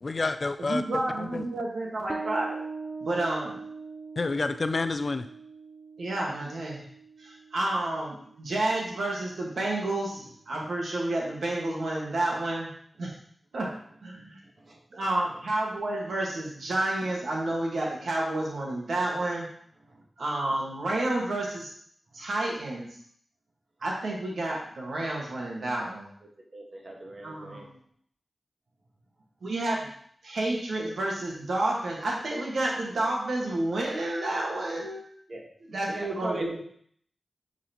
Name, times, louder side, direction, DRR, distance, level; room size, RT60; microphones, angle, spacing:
voice 1, 0.0-0.8 1.2-1.4 4.2-5.3, left 3 dB, 55° left, 10 dB, 0.4 m, -29 dB
voice 2, 0.6-2.6 3.0-3.6 6.0-6.8 7.2-12.7 13.0-13.1 13.5-13.7 14.0-14.4 14.9-19.5 20.2-21.7 22.1-22.9 23.8-26.1 27.2-27.8 29.4-29.9 30.2-35.1 35.6-36.6, right 2 dB, 80° right, -2 dB, 1.6 m, -30 dB
Bass guitar, 2.1-9.3, right 4 dB, 30° right, 0.6 m, -42 dB
voice 3, 26.5-27.7 35.3-35.5 35.9-36.6, right 2 dB, 60° right, 0 dB, 1.5 m, -39 dB
8.5 x 4.0 x 3.0 m, 0.62 s
cardioid pair, 45°, 0 cm